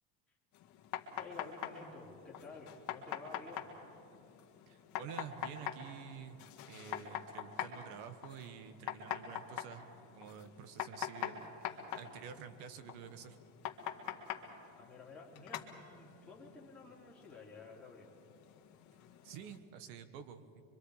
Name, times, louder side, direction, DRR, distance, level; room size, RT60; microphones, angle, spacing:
sound 1, 0.5-19.6, left 10 dB, 40° left, 1.9 m, -45 dB
voice 1, 1.1-3.8 14.7-18.2, left 3 dB, ahead, -6 dB, 3.3 m, -52 dB
voice 2, 4.7-9.8 10.1-13.4 19.2-20.6, right 8 dB, 60° right, 12 dB, 1.5 m, -49 dB
25.0 x 24.0 x 5.0 m, 2.7 s
cardioid pair, 155°, 43 cm